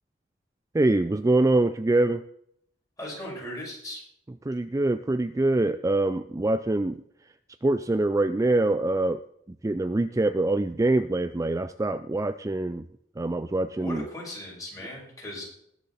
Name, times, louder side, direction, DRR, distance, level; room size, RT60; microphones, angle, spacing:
voice 1, 0.7-2.2 4.5-7.0 7.6-9.2 9.6-12.8 13.2-14.0, right 2 dB, 20° right, 11 dB, 0.4 m, -24 dB
voice 2, 3.0-4.0 13.8-15.4, left 1 dB, 20° left, -4 dB, 6.4 m, -37 dB
21.0 x 7.4 x 4.2 m, 0.71 s
head